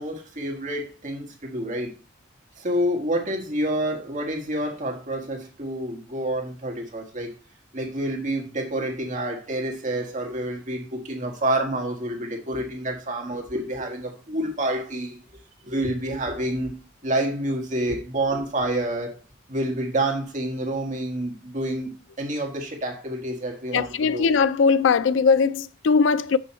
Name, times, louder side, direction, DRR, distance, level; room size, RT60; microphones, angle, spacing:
voice 1, 0.0-1.9 2.6-7.3 7.7-15.2 15.6-16.8 17.0-19.1 19.5-21.9 22.2-24.4, right 1 dB, 40° right, 1.7 m, -28 dB
voice 2, 23.7-26.4, left 5 dB, 65° left, 0.4 m, -20 dB
6.5 x 5.5 x 4.3 m
head